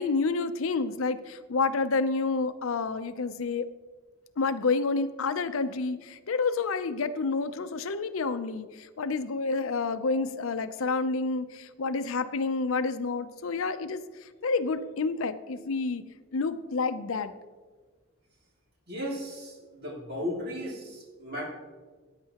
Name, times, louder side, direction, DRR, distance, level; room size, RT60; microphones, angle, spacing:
voice 1, 0.0-3.7 4.4-14.0 14.4-16.0 16.3-17.3, left 4 dB, 75° left, 12 dB, 0.5 m, -29 dB
voice 2, 18.9-21.5, left 1 dB, 45° right, -2 dB, 2.5 m, -35 dB
14.0 x 9.6 x 2.9 m, 1.4 s
head